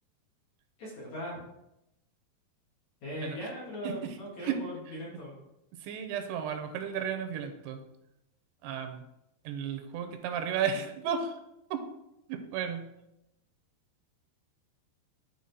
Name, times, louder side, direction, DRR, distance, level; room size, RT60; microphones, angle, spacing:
voice 1, 0.8-1.4 3.0-5.3, equal, 50° left, -6 dB, 2.5 m, -39 dB
voice 2, 3.8-4.2 4.4-4.6 5.7-7.8 8.6-9.0 9.4-11.4 11.7-11.8 12.3-12.9, right 7 dB, 85° right, 7 dB, 3.0 m, -33 dB
10.0 x 4.0 x 4.1 m, 0.87 s
omnidirectional pair, 5.0 m